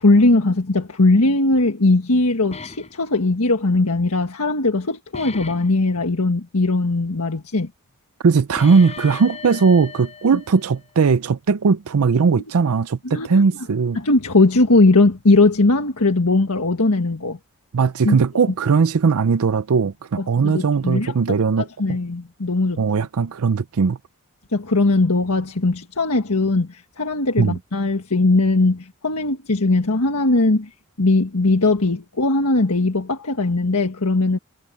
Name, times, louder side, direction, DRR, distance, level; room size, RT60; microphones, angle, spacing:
voice 1, 0.0-7.7 13.0-13.5 13.9-17.4 18.0-18.2 20.4-21.4 21.8-22.8 24.5-30.7 31.0-34.4, left 2 dB, 75° left, 1.6 m, -19 dB
sound 1, 2.5-3.0 5.1-5.7 8.6-11.0, left 4 dB, 30° left, 5.1 m, -37 dB
voice 2, 8.2-14.0 17.7-22.0 22.8-24.0 27.4-27.6, right 5 dB, 70° right, 0.5 m, -18 dB
head